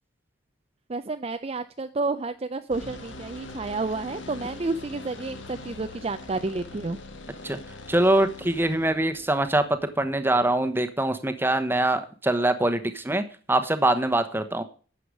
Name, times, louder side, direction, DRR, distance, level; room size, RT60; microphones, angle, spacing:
voice 1, 0.9-7.0, right 3 dB, 30° right, 9 dB, 0.5 m, -30 dB
sound 1, 2.7-10.7, left 2 dB, 70° left, 1.9 m, -43 dB
voice 2, 7.9-14.6, right 1 dB, 10° right, 9 dB, 1.0 m, -24 dB
11.5 x 7.9 x 4.8 m, 0.40 s
head